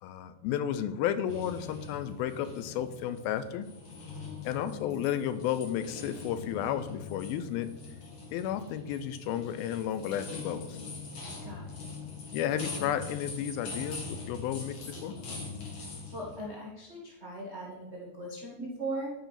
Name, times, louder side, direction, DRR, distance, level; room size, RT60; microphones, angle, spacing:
voice 1, 0.0-3.7 4.4-7.7 8.3-10.8 12.3-14.8 15.0-15.1, left 10 dB, 80° left, 12 dB, 2.4 m, -32 dB
sound 1, 1.3-16.4, left 3 dB, 50° left, 2.1 m, -42 dB
voice 2, 11.4-11.8 16.1-19.1, right 1 dB, 80° right, -3 dB, 0.6 m, -39 dB
10.5 x 4.9 x 5.8 m, 0.97 s
omnidirectional pair, 4.4 m